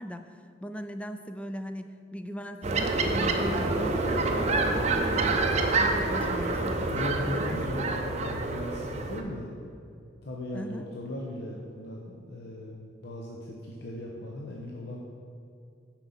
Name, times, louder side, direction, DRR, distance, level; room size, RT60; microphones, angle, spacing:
voice 1, 0.0-5.4 5.8-7.8 8.2-8.4 10.5-10.8, equal, 5° left, 8 dB, 0.3 m, -38 dB
sound 1, 2.6-9.2, right 3 dB, 40° right, 0.6 m, -27 dB
voice 2, 6.9-9.5 10.2-15.0, left 1 dB, 60° left, -3 dB, 0.8 m, -38 dB
9.1 x 4.6 x 5.5 m, 2.5 s
head